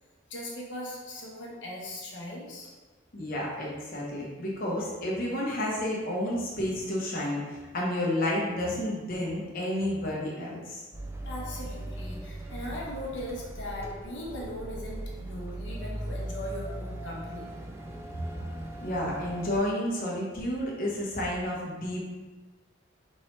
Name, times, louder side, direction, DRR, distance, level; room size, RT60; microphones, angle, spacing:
voice 1, 0.3-2.7 11.2-17.5, left 1 dB, 70° left, -3 dB, 1.1 m, -39 dB
voice 2, 3.1-10.8 18.8-22.0, left 1 dB, 50° left, -4 dB, 1.0 m, -31 dB
sound 1, 10.9-19.6, right 1 dB, 15° right, 0.4 m, -39 dB
4.6 x 3.2 x 3.1 m, 1.3 s
head